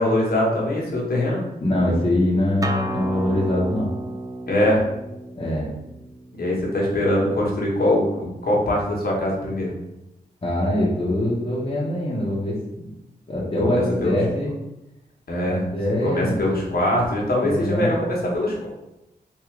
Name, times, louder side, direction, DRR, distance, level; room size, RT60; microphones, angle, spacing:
voice 1, 0.0-1.4 4.5-4.9 6.3-9.8 13.6-13.7 14.0-14.2 15.3-15.6 16.0-18.7, left 1 dB, 60° left, -3 dB, 1.3 m, -22 dB
voice 2, 1.6-3.9 5.3-5.7 10.4-12.9 13.3-14.5 15.5-16.4 17.4-17.9, left 1 dB, 30° left, -7 dB, 1.1 m, -23 dB
Acoustic guitar, 2.6-7.8, right 2 dB, 20° right, 0.4 m, -33 dB
3.6 x 2.7 x 3.3 m, 0.91 s
cardioid pair, 55°, 18 cm